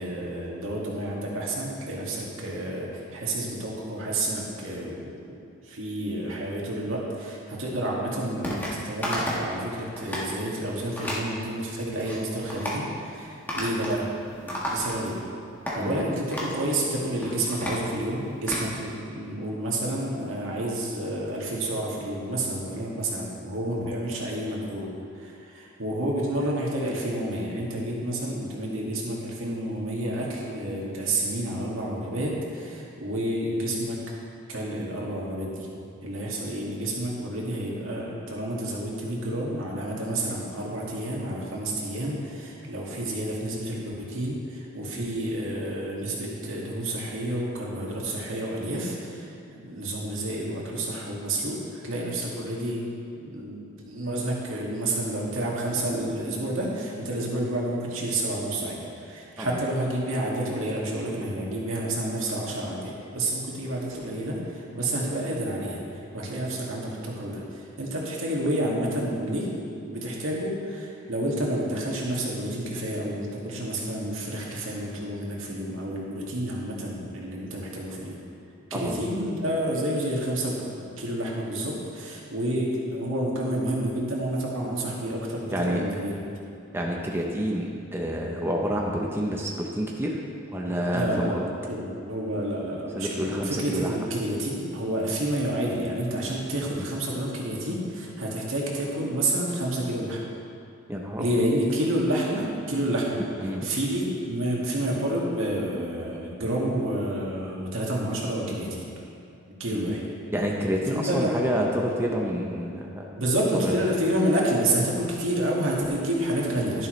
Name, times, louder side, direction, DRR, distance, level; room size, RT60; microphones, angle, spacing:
voice 1, 0.0-15.2 15.7-24.9 25.2-34.1 34.5-35.7 36.0-52.8 53.2-69.5 69.8-78.2 78.7-86.2 90.9-91.4 91.7-100.2 101.2-103.2 103.6-108.8 109.6-110.0 110.9-111.4 113.2-116.9, right 1 dB, 85° right, -4 dB, 2.1 m, -29 dB
sound 1, 8.4-8.7 9.0-9.5 9.9-10.3 11.0-11.3 11.8-12.2 12.5-12.8 13.5-14.0 14.3-15.2 15.7-15.8 16.3-16.6 17.1-18.7, equal, 10° left, 1.5 m, -32 dB
voice 2, 85.5-85.8 86.7-90.2 90.5-91.5 92.9-94.1 100.9-101.2 103.4-103.7 109.7-109.9 110.3-113.1 113.6-113.8, equal, 10° right, -1 dB, 0.7 m, -28 dB
11.0 x 11.0 x 3.2 m, 2.5 s
head